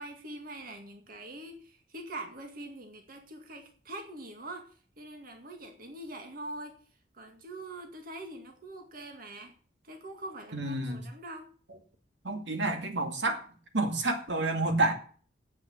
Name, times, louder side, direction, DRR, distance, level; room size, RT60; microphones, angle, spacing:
voice 1, 0.0-4.7 5.0-6.8 7.1-9.5 9.8-11.5, right 1 dB, 50° right, 2.0 m, -43 dB
voice 2, 10.5-11.0 12.2-13.4 13.7-14.9, right 2 dB, 70° right, 2.4 m, -29 dB
9.7 x 8.2 x 8.5 m
head